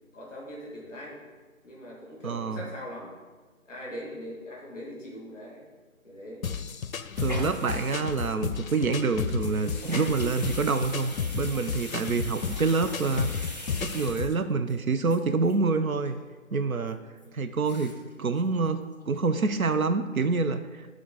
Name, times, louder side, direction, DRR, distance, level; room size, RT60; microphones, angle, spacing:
voice 1, 0.1-1.2 1.6-3.2 3.6-5.6 6.0-6.4 17.2-17.4, equal, 5° left, -5 dB, 1.1 m, -41 dB
voice 2, 2.2-2.6 7.2-13.3 13.8-16.2 16.5-17.0 17.3-20.9, right 4 dB, 75° right, 9 dB, 0.6 m, -27 dB
sound 1, 6.4-14.4, left 6 dB, 75° left, 0.5 m, -33 dB
sound 2, 7.2-14.7 15.1-15.2 15.5-15.6 15.8-16.2 16.6-16.7 17.2-17.3 17.6-18.1 18.4-18.5 18.8-19.3 19.7-19.8, left 1 dB, 30° right, 0.6 m, -42 dB
10.5 x 3.8 x 3.7 m, 1.4 s
figure-of-eight pair, 165°, 42 cm